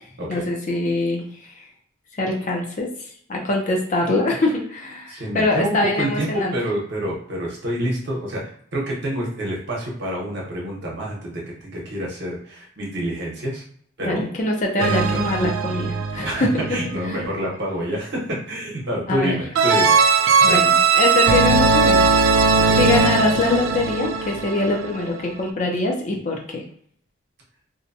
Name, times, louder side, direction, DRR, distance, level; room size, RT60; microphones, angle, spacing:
voice 1, 0.3-1.5 2.1-2.9 3.3-6.5 14.0-16.6 17.1-17.2 19.1-19.4 20.4-22.2 22.4-26.6, left 2 dB, 40° left, 0 dB, 0.5 m, -23 dB
voice 2, 5.1-8.4 8.7-13.6 14.0-14.2 14.8-15.2 16.2-18.2 18.5-20.0 20.4-20.6 22.7-22.8, right 1 dB, 55° right, -2 dB, 0.9 m, -27 dB
sound 1, 14.8-16.9 19.6-25.0, right 4 dB, 90° right, 0.3 m, -19 dB
2.7 x 2.2 x 2.6 m, 0.63 s
head